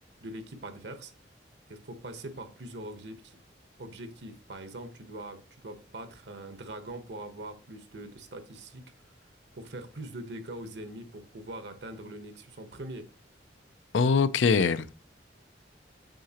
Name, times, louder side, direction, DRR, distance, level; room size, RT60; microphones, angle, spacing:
voice 1, 0.2-1.1 1.7-3.4 3.8-8.8 9.5-13.1, right 1 dB, 70° right, 1.0 m, -42 dB
voice 2, 13.9-14.9, left 5 dB, 90° left, 0.5 m, -23 dB
7.7 x 5.7 x 2.9 m
head